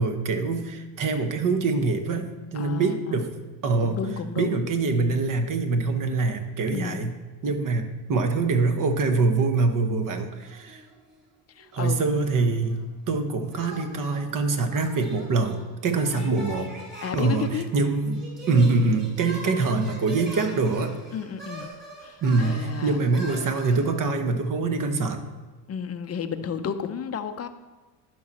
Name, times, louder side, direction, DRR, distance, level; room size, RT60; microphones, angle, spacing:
voice 1, 0.0-3.3 3.6-4.0 4.4-7.1 7.4-10.8 11.7-16.7 17.1-20.9 22.2-25.2, right 3 dB, 40° right, 7 dB, 1.2 m, -24 dB
voice 2, 2.5-3.2 3.8-4.6 6.7-7.1 11.6-12.1 16.0-16.7 17.0-17.7 21.1-21.7 22.0-23.0 25.7-27.5, left 7 dB, 30° left, 9 dB, 0.6 m, -32 dB
sound 1, 10.4-11.2 11.5-12.9 13.5-23.8, right 1 dB, 20° right, 3.5 m, -43 dB
12.0 x 6.2 x 4.2 m, 1.3 s
supercardioid pair, 95°, 48 cm